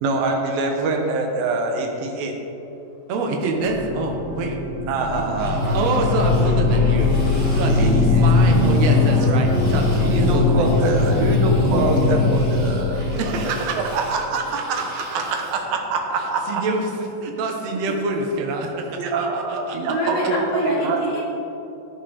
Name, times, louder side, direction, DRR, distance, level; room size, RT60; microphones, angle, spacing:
voice 1, 0.0-2.4 4.9-5.8 7.7-8.4 8.8-9.7 10.0-13.3 13.7-14.4 14.7-14.8 15.1-16.6 18.7-21.1, right 3 dB, 80° right, 3 dB, 2.8 m, -25 dB
voice 2, 3.1-4.6 5.0-5.3 5.7-7.2 7.5-10.8 13.2-13.8 14.3-15.2 16.2-19.9, right 3 dB, 60° right, 2 dB, 1.9 m, -26 dB
sound 1, 3.6-16.0 16.5-16.6, left 1 dB, 20° left, 2.4 m, -37 dB
sound 2, 4.8-13.7, left 3 dB, 80° left, 3.1 m, -19 dB
sound 3, 5.4-15.7, right 1 dB, 35° right, 1.7 m, -40 dB
voice 3, 19.9-21.2, right 1 dB, 60° left, -6 dB, 3.8 m, -25 dB
13.0 x 10.0 x 3.6 m, 3.0 s
omnidirectional pair, 4.1 m